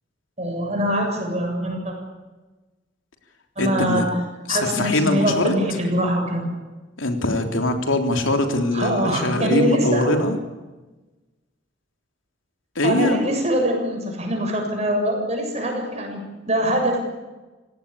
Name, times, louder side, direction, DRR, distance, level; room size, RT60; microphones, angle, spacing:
voice 1, 0.4-1.9 3.6-4.2 4.5-6.5 8.7-10.1 12.8-17.0, equal, 35° right, 2 dB, 7.3 m, -23 dB
voice 2, 3.6-4.1 4.5-5.5 7.0-10.4 12.7-13.3, left 1 dB, 85° left, 4 dB, 3.5 m, -22 dB
26.5 x 18.0 x 8.7 m, 1.2 s
head